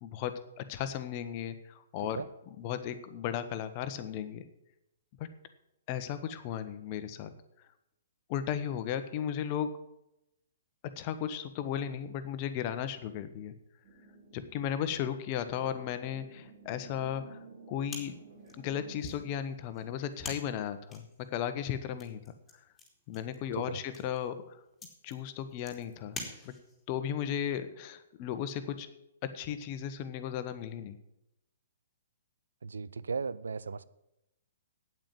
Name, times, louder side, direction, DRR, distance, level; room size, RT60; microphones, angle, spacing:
voice 1, 0.0-4.4 5.2-5.3 5.9-7.3 8.3-9.7 11.0-13.5 14.3-17.4 17.7-18.1 18.6-22.2 23.1-24.6 25.0-26.2 26.4-26.5 26.9-28.9 29.3-31.0, left 9 dB, 35° left, 1.1 m, -35 dB
sound 1, 13.8-19.2, right 3 dB, 40° right, 5.7 m, -54 dB
sound 2, 17.9-26.9, left 3 dB, 10° left, 3.0 m, -48 dB
voice 2, 32.6-33.8, right 5 dB, 70° right, 0.5 m, -36 dB
9.0 x 8.9 x 7.9 m
figure-of-eight pair, 120°, 0 cm